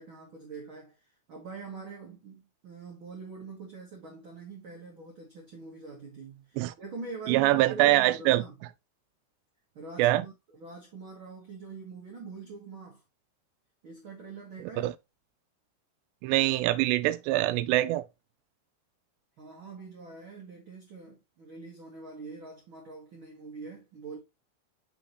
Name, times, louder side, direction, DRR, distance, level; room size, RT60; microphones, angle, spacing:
voice 1, 0.0-8.5 9.7-13.0 13.8-14.9 19.4-24.2, right 4 dB, 65° right, 1.2 m, -44 dB
voice 2, 7.3-8.4 10.0-10.3 14.8-14.9 16.2-18.1, right 16 dB, 85° right, 2.7 m, -24 dB
6.3 x 5.3 x 3.0 m
omnidirectional pair, 4.9 m